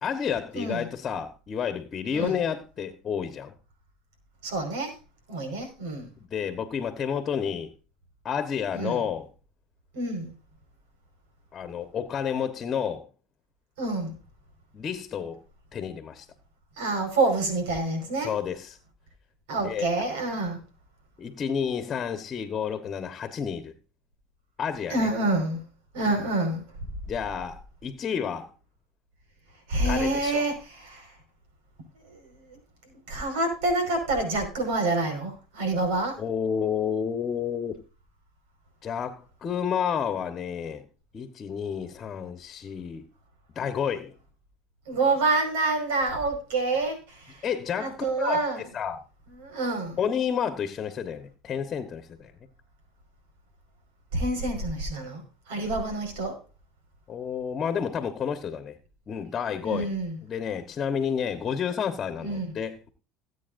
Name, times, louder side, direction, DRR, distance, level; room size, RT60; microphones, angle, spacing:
voice 1, 0.0-3.5 6.2-7.7 8.2-9.3 11.5-13.0 14.7-15.4 15.7-16.3 18.2-18.8 19.6-19.9 21.2-23.7 24.6-25.1 27.1-28.5 29.8-30.4 36.2-37.8 38.8-40.8 41.1-43.0 43.5-44.1 47.4-49.0 50.0-52.3 57.1-58.8 59.1-59.9 60.2-62.9, left 7 dB, 35° left, 1.3 m, -30 dB
voice 2, 4.4-4.9 5.3-6.1 8.7-9.0 9.9-10.3 13.8-14.2 16.8-18.3 19.5-20.6 24.9-25.6 25.9-26.6 29.7-31.1 32.1-32.2 32.5-32.6 33.1-36.2 44.9-47.4 47.8-48.6 49.4-50.0 54.1-55.2 55.5-56.4 59.6-60.2 62.2-62.5, right 2 dB, 85° right, 5.2 m, -27 dB
18.5 x 8.4 x 2.6 m
supercardioid pair, 100°, 0 cm